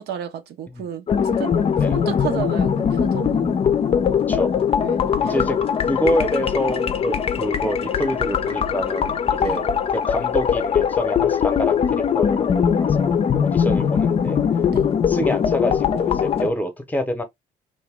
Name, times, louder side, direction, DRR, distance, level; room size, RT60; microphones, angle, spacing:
voice 1, 0.0-1.6 1.9-3.6 4.8-5.5 9.4-9.6 14.7-14.9, right 9 dB, 70° right, 0.8 m, -32 dB
sound 1, 1.1-16.5, left 7 dB, 35° left, 0.5 m, -21 dB
voice 2, 5.2-5.6 5.9-14.4 15.1-17.2, left 1 dB, 10° left, 0.8 m, -27 dB
2.8 x 2.7 x 3.5 m
cardioid pair, 110°, 17 cm